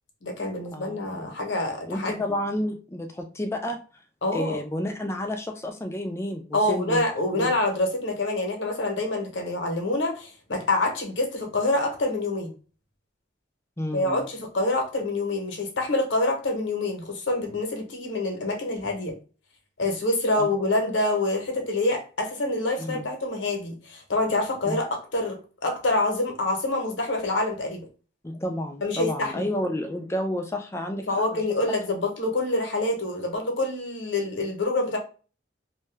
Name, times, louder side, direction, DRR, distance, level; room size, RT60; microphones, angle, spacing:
voice 1, 0.2-2.2 4.2-4.6 6.5-12.5 13.9-19.2 19.8-27.9 28.8-29.5 31.1-35.0, left 2 dB, 75° left, 3 dB, 0.8 m, -26 dB
voice 2, 0.7-1.3 1.9-3.8 4.3-7.0 7.4-7.5 13.8-14.3 20.4-20.7 22.8-23.1 24.6-24.8 28.2-31.0, left 1 dB, 15° left, 5 dB, 0.4 m, -30 dB
2.6 x 2.2 x 3.3 m, 0.36 s
head